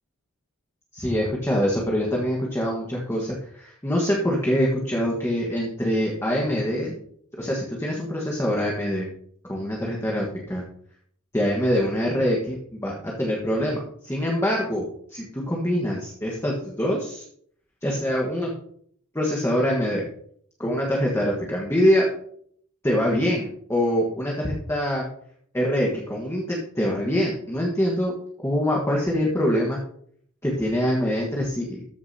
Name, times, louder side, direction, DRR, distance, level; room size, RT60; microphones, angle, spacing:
voice 1, 0.9-7.0 7.4-9.1 9.5-10.6 11.3-14.8 15.1-17.2 17.8-18.5 19.1-20.1 20.6-22.1 22.8-25.0 25.5-28.1 28.4-29.8 30.4-31.8, equal, 10° left, -2 dB, 1.3 m, -24 dB
13.5 x 6.7 x 2.8 m, 0.64 s
head